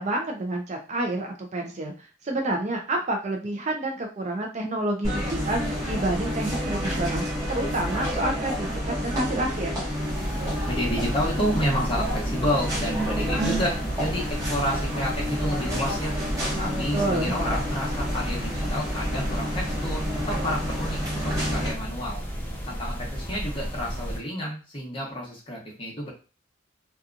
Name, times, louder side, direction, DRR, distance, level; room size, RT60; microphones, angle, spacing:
voice 1, 0.0-1.9 2.2-9.7 16.9-17.3, right 2 dB, 40° right, 2 dB, 0.5 m, -29 dB
sound 1, 5.0-21.7, equal, 20° right, 1.0 m, -29 dB
sound 2, 10.1-24.2, equal, 10° left, 0.6 m, -34 dB
voice 2, 10.6-16.2 16.6-22.2 22.7-26.1, equal, 30° left, -3 dB, 0.9 m, -30 dB
2.8 x 2.3 x 2.4 m, 0.34 s
head